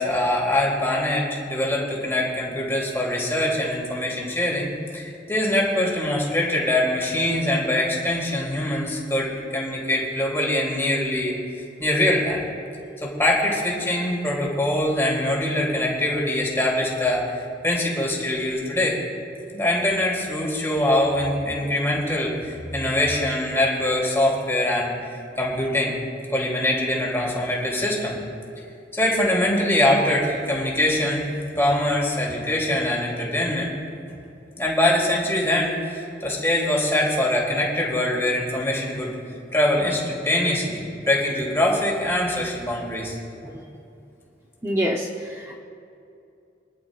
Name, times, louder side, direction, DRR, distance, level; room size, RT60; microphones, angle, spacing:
voice 1, 0.0-11.3 11.8-12.4 13.0-17.3 17.6-19.0 19.5-26.0 26.3-28.2 28.9-33.7 34.6-39.1 39.5-43.2, left 1 dB, 15° left, -3 dB, 2.8 m, -23 dB
voice 2, 44.6-45.1 45.4-45.6, equal, 15° right, -1 dB, 0.7 m, -25 dB
24.5 x 11.5 x 2.4 m, 2.6 s
head